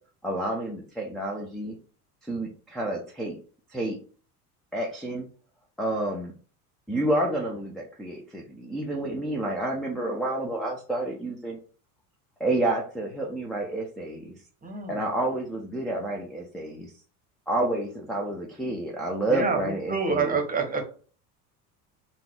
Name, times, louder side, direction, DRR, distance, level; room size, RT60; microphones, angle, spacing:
voice 1, 0.2-1.8 2.3-3.4 3.7-4.0 4.7-5.3 5.8-6.3 6.9-11.6 12.4-14.3 14.9-16.9 17.5-20.4, right 1 dB, ahead, -3 dB, 0.7 m, -29 dB
voice 2, 14.6-15.1 19.3-20.8, right 5 dB, 20° right, 4 dB, 1.1 m, -28 dB
3.7 x 2.5 x 3.6 m, 0.41 s
hypercardioid pair, 75°, 46 cm